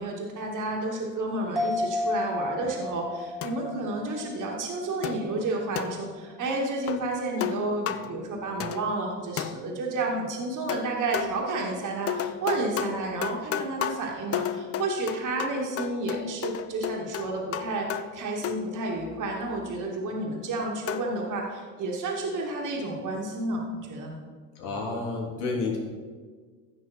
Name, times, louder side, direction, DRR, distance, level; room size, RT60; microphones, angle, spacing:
voice 1, 0.0-24.2, right 2 dB, 40° right, -1 dB, 2.4 m, -31 dB
sound 1, 1.6-5.3 5.6-5.7, left 3 dB, ahead, 1.6 m, -32 dB
sound 2, 3.4-3.9 5.0-6.2 6.9-7.1 7.4-8.2 8.6-9.1 9.4-9.9 10.7-11.5 12.1-18.9 20.9-21.2, left 9 dB, 30° left, 0.6 m, -33 dB
voice 2, 24.6-25.8, left 3 dB, 70° left, -2 dB, 3.2 m, -30 dB
15.5 x 6.1 x 4.4 m, 1.5 s
hypercardioid pair, 70°, 49 cm